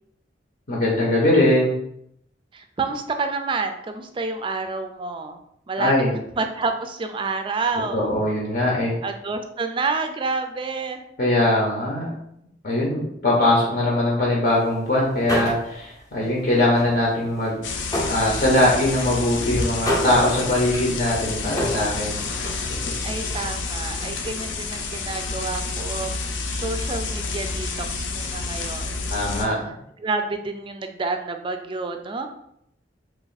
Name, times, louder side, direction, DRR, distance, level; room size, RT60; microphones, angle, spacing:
voice 1, 0.7-1.7 5.8-6.1 7.9-8.9 11.2-12.0 12.6-17.6 18.1-22.9 29.1-29.6, left 1 dB, 55° left, -4 dB, 0.8 m, -21 dB
voice 2, 2.5-5.4 5.7-5.9 6.4-8.1 9.0-11.0 23.0-26.1 26.5-29.4 30.0-32.3, right 3 dB, 30° right, 6 dB, 0.3 m, -29 dB
sound 1, 14.5-14.7 15.0-15.9 16.2-18.5 18.8-22.6, left 1 dB, 20° left, 0.6 m, -31 dB
sound 2, 17.6-29.5, left 3 dB, 85° left, 0.5 m, -29 dB
3.0 x 2.5 x 3.9 m, 0.75 s
head